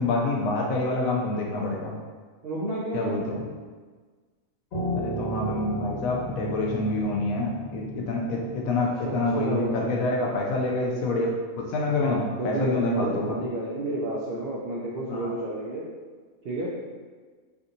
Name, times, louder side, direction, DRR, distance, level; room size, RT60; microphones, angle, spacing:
voice 1, 0.0-1.9 2.9-3.4 4.9-13.4 15.1-15.3, left 2 dB, 80° left, -1 dB, 1.0 m, -27 dB
voice 2, 2.4-3.5 9.0-9.8 12.0-15.9 16.4-16.7, right 1 dB, 65° right, -6 dB, 0.6 m, -31 dB
Piano, 4.7-10.0, right 1 dB, 45° left, 1.9 m, -35 dB
3.3 x 2.7 x 2.6 m, 1.5 s
omnidirectional pair, 1.4 m